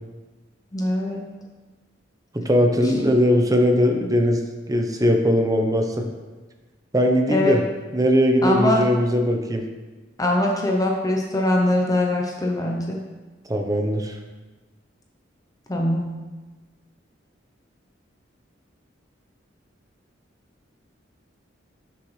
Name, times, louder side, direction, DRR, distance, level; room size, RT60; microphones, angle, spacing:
voice 1, 0.7-1.3 2.8-2.9 7.3-7.6 8.4-8.9 10.2-13.0 15.7-16.1, left 1 dB, 20° left, 0 dB, 0.7 m, -22 dB
voice 2, 2.3-4.4 4.7-6.1 6.9-7.6 7.9-9.6 13.5-14.1, equal, 20° right, 3 dB, 0.8 m, -20 dB
9.9 x 6.1 x 3.2 m, 1.3 s
head